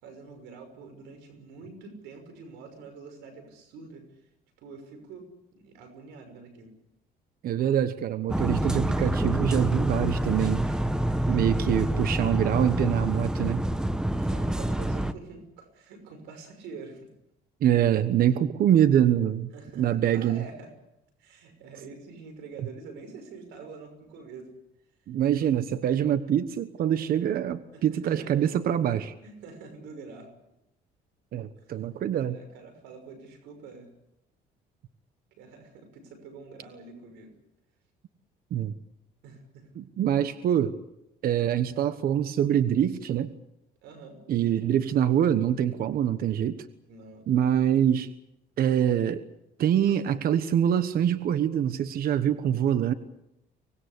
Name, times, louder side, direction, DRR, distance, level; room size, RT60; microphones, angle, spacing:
voice 1, 0.0-4.2 4.6-6.7 10.7-11.5 13.9-17.1 19.5-20.7 21.2-24.5 27.7-28.4 29.2-30.3 32.3-33.9 35.4-37.3 39.2-39.7 43.8-44.2 46.9-47.4, right 4 dB, 90° right, 8 dB, 6.0 m, -46 dB
voice 2, 7.4-10.6 11.3-13.7 17.6-19.5 19.8-20.4 25.1-29.1 31.3-32.4 38.5-38.7 39.8-40.7 41.2-43.3 44.3-46.6 47.3-48.1 48.6-49.2 49.6-52.9, right 10 dB, 60° right, 12 dB, 1.2 m, -24 dB
sound 1, 8.3-15.1, right 1 dB, 5° right, 1.1 m, -27 dB
24.5 x 19.5 x 8.3 m, 0.86 s
cardioid pair, 110°, 17 cm